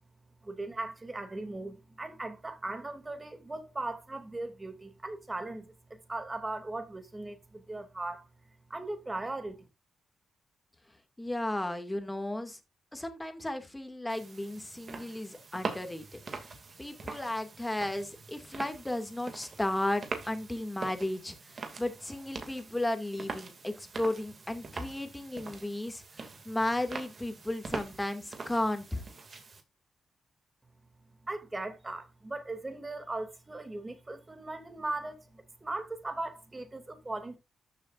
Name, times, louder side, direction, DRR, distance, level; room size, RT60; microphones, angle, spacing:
voice 1, 0.4-8.3 8.7-9.7 31.2-37.4, right 2 dB, 20° right, 2.7 m, -38 dB
voice 2, 11.2-12.6 12.9-16.2 16.8-29.0, left 1 dB, 10° left, 2.4 m, -34 dB
sound 1, 14.1-29.6, right 4 dB, 45° right, 2.5 m, -43 dB
13.5 x 7.4 x 2.6 m
cardioid pair, 85°, 0 cm